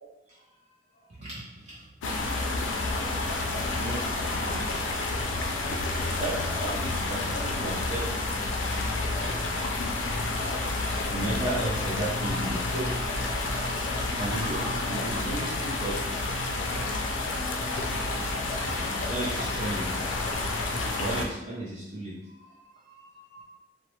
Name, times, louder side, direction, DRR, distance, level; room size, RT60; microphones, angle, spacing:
voice 1, 1.2-1.8 3.4-4.0 6.2-9.0 11.0-13.0 13.4-16.0 18.1-23.4, right 1 dB, 35° right, -8 dB, 0.6 m, -36 dB
sound 1, 2.0-21.3, left 2 dB, 85° left, 0.4 m, -29 dB
2.8 x 2.0 x 3.0 m, 0.95 s
head